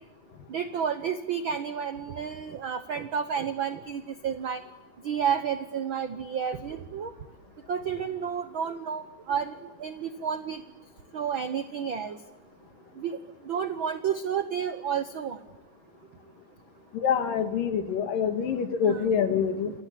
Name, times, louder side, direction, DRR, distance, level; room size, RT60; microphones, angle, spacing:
voice 1, 0.5-4.6 5.0-7.1 7.7-10.6 11.1-12.2 13.0-13.2 13.5-15.4 18.8-19.4, right 7 dB, 85° right, 10 dB, 1.1 m, -31 dB
voice 2, 16.9-19.7, left 7 dB, 80° left, 7 dB, 3.5 m, -26 dB
28.5 x 27.0 x 7.5 m, 1.1 s
omnidirectional pair, 3.9 m